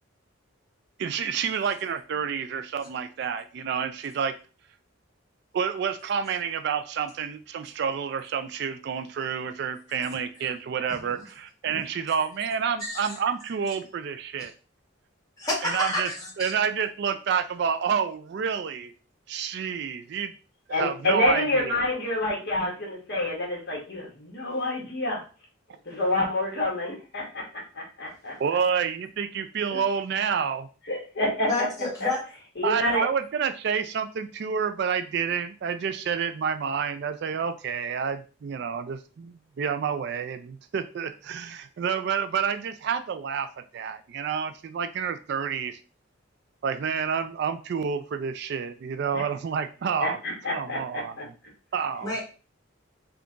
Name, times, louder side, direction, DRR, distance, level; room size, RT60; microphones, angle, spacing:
voice 1, 1.0-4.3 5.5-14.5 15.6-16.1 16.4-18.9 19.3-20.3 20.7-21.8 28.4-30.7 32.6-43.5 43.7-45.8 46.6-50.2 50.5-51.2 51.7-52.2, right 7 dB, 55° right, 10 dB, 0.3 m, -29 dB
voice 2, 12.8-13.1 15.4-16.5 31.5-32.2 52.0-52.2, left 2 dB, 15° left, -4 dB, 1.5 m, -30 dB
voice 3, 20.7-25.2 25.8-27.4 27.7-28.3 29.7-29.8 30.9-31.5 32.0-32.1 32.6-33.1 49.1-49.2 50.0-51.2, left 2 dB, 50° left, -3 dB, 1.5 m, -28 dB
3.7 x 2.3 x 3.8 m, 0.35 s
head